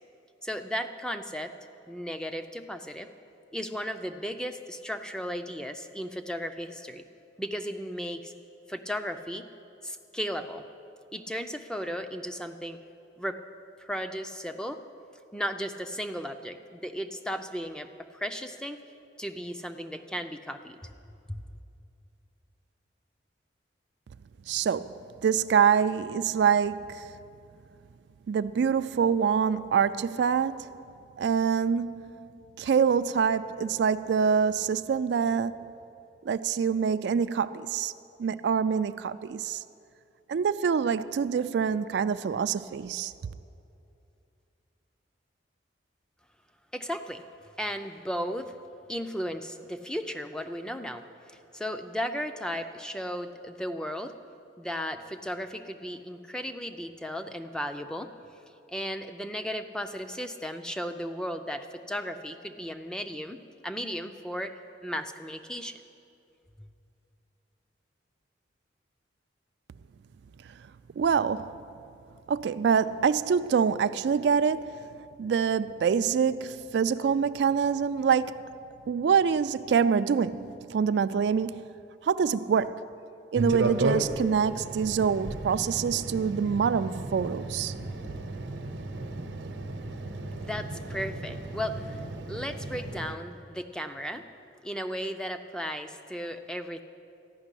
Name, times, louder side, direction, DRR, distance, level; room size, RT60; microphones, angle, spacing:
voice 1, 0.4-1.5 1.9-3.1 3.5-7.0 7.4-8.3 8.7-9.5 9.8-10.6 11.1-12.8 13.2-13.4 13.8-14.8 15.3-18.8 19.2-20.9 21.3-21.4 46.7-47.2 47.6-48.5 48.9-54.1 54.6-58.1 58.7-64.5 64.8-65.8 90.2-92.0 92.3-94.3 94.6-96.8, equal, 5° left, 0.4 m, -35 dB
voice 2, 24.5-27.1 28.3-30.7 31.2-32.3 32.6-35.7 36.3-37.9 38.2-39.6 40.3-43.1 71.0-71.5 72.3-74.8 75.2-78.5 78.9-81.6 82.0-82.8 83.3-87.7, right 6 dB, 65° right, 0.3 m, -25 dB
sound 1, 83.3-93.2, right 2 dB, 80° right, 0.8 m, -34 dB
13.5 x 6.0 x 9.8 m
head